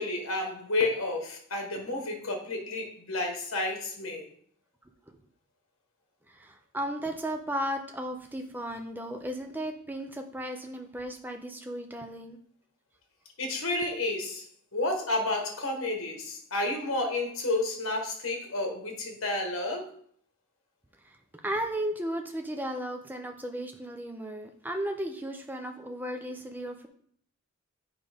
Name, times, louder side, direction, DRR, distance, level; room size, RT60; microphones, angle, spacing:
voice 1, 0.0-4.3 13.4-14.4 14.7-19.9, left 2 dB, 65° left, 3 dB, 1.3 m, -31 dB
voice 2, 6.3-12.4 21.4-26.9, right 1 dB, 10° right, 4 dB, 0.5 m, -35 dB
7.9 x 5.2 x 3.5 m, 0.62 s
head